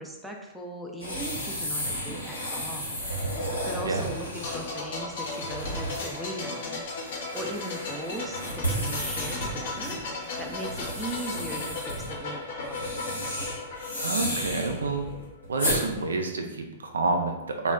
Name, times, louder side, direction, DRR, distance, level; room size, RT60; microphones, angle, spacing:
voice 1, 0.0-3.0 3.6-6.9 7.3-10.0 10.4-13.0, right 2 dB, 5° right, 0 dB, 0.4 m, -38 dB
sound 1, 1.0-15.8, equal, 90° left, 0.9 m, -33 dB
sound 2, 4.4-15.0 15.3-15.5, left 3 dB, 60° left, 0.6 m, -36 dB
voice 2, 14.0-15.1 15.5-17.7, right 3 dB, 80° right, 4 dB, 0.3 m, -29 dB
2.1 x 2.1 x 3.6 m, 1.0 s
hypercardioid pair, 110°, 0 cm